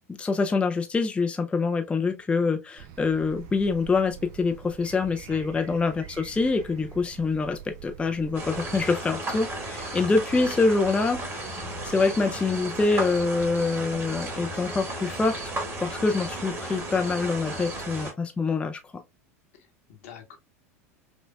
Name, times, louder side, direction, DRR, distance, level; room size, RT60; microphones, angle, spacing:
voice 1, 0.2-15.4 15.8-18.8, left 4 dB, 15° left, 0.4 m, -25 dB
sound 1, 2.8-8.8, right 10 dB, 50° right, 0.6 m, -45 dB
voice 2, 5.3-5.6 19.5-20.4, left 8 dB, 65° left, 1.1 m, -47 dB
sound 2, 8.3-18.1, right 2 dB, 30° right, 1.9 m, -34 dB
5.4 x 2.2 x 2.2 m
hypercardioid pair, 85°, 8 cm